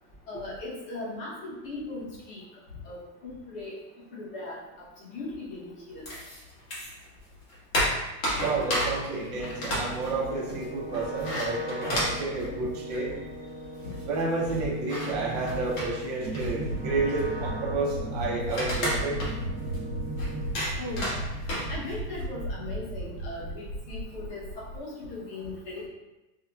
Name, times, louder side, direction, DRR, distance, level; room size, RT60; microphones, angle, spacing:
voice 1, 0.3-2.4 2.8-3.7 4.1-6.1 20.8-21.1 21.7-25.9, left 2 dB, 30° left, -5 dB, 0.9 m, -38 dB
sound 1, 6.1-7.1 7.4-13.3 13.6-13.7 13.8-22.2, equal, 55° left, 1.4 m, -33 dB
voice 2, 8.4-13.1 14.1-19.2, right 3 dB, 25° right, -4 dB, 0.5 m, -30 dB
sound 2, 9.4-20.7 21.0-21.6, equal, 5° left, 0.8 m, -40 dB
sound 3, 16.2-24.8, right 1 dB, 70° right, 1.0 m, -35 dB
5.5 x 2.1 x 2.3 m, 1.0 s
supercardioid pair, 175°, 48 cm